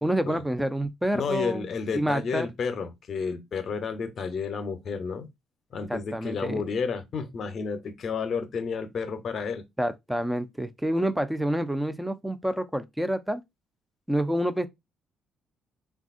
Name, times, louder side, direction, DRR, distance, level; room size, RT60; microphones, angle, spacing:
voice 1, 0.0-1.7 1.9-2.5 5.9-6.7 9.8-13.4 14.1-14.7, right 1 dB, 5° right, 0.5 m, -28 dB
voice 2, 1.1-5.3 5.7-9.6, left 5 dB, 60° left, 0.7 m, -31 dB
3.3 x 2.3 x 2.5 m
supercardioid pair, 65°, 0 cm